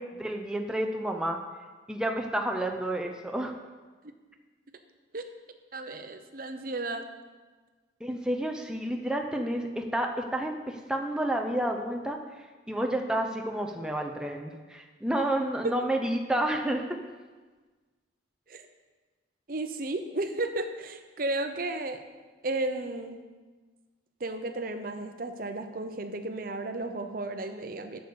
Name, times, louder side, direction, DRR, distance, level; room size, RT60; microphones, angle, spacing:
voice 1, 0.0-1.4 1.9-3.5 8.0-16.8, right 1 dB, 5° right, 2 dB, 0.5 m, -30 dB
voice 2, 5.7-7.1 15.6-15.7 18.5-18.7 19.5-22.0 22.4-23.2 24.2-28.0, right 2 dB, 50° right, 7 dB, 0.7 m, -33 dB
8.2 x 6.9 x 6.8 m, 1.4 s
head